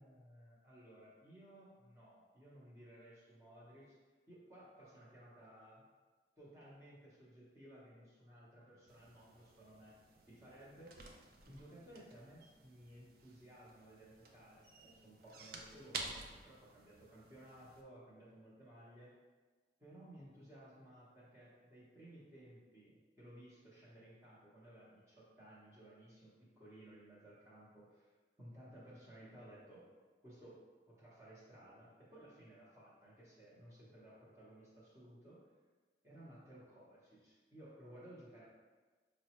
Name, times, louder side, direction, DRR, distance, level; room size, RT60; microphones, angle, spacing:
voice 1, 0.0-4.0 4.3-5.9 6.4-10.0 10.3-10.9 11.5-19.1 19.8-28.1 28.4-29.9 30.2-35.4 36.0-38.4, right 1 dB, 15° right, -8 dB, 0.8 m, -58 dB
sound 1, 8.9-17.8, right 3 dB, 55° right, 0.4 m, -52 dB
5.1 x 2.1 x 2.9 m, 1.3 s
head